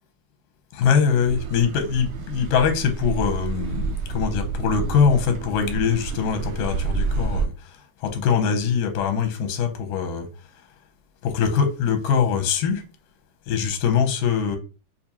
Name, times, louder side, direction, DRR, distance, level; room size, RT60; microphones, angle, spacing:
voice 1, 0.7-7.5 8.0-10.3 11.2-12.8 13.5-14.6, left 6 dB, 90° left, 2.3 m, -22 dB
Car passing by / Accelerating revving vroom, 1.3-7.5, right 4 dB, 85° right, 1.5 m, -29 dB
6.6 x 2.4 x 2.7 m
omnidirectional pair, 3.6 m